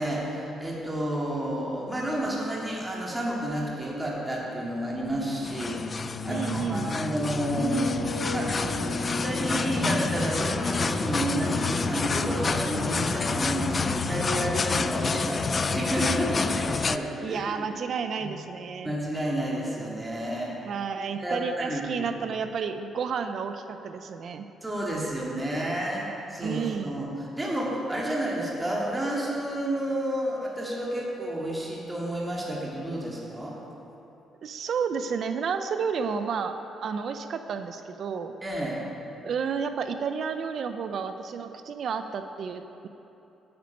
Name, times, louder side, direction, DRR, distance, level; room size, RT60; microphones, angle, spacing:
voice 1, 0.0-8.6 9.1-17.7 18.2-18.3 18.8-20.6 21.2-22.1 24.6-33.6 38.4-38.8, right 1 dB, 15° right, -4 dB, 2.1 m, -30 dB
sound 1, 5.0-14.9, left 2 dB, 85° left, 0.9 m, -34 dB
sound 2, 5.4-17.0, left 4 dB, 35° left, 0.3 m, -29 dB
voice 2, 6.3-6.8 17.2-18.9 20.7-24.5 26.4-27.0 34.4-36.5 36.8-38.3 39.2-42.9, right 6 dB, 60° right, 8 dB, 0.5 m, -31 dB
9.3 x 8.8 x 5.2 m, 3.0 s
cardioid pair, 90°, 0 cm